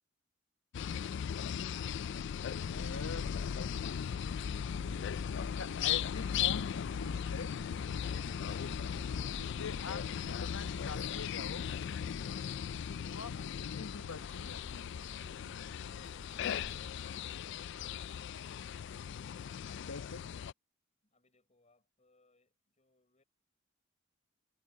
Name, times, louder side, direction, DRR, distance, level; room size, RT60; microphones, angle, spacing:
sound 1, 0.7-20.5, left 8 dB, 55° left, 0.3 m, -37 dB
voice 1, 2.7-3.3 5.5-7.5 9.2-11.6 13.0-15.0 19.9-20.2, left 4 dB, 85° left, 1.4 m, -45 dB
sound 2, 2.7-16.9, right 1 dB, 10° right, 0.8 m, -53 dB
voice 2, 21.0-23.2, left 2 dB, 30° left, 5.0 m, -73 dB
head